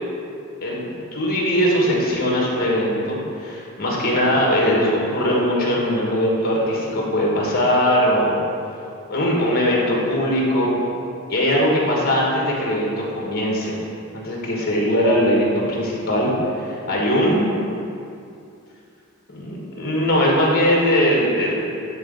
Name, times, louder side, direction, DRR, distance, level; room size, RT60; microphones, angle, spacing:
voice 1, 0.6-8.4 9.1-10.7 11.3-13.8 14.1-16.3 16.6-17.4 19.3-21.5, equal, 50° left, -3 dB, 1.4 m, -20 dB
9.1 x 3.8 x 3.9 m, 2.6 s
head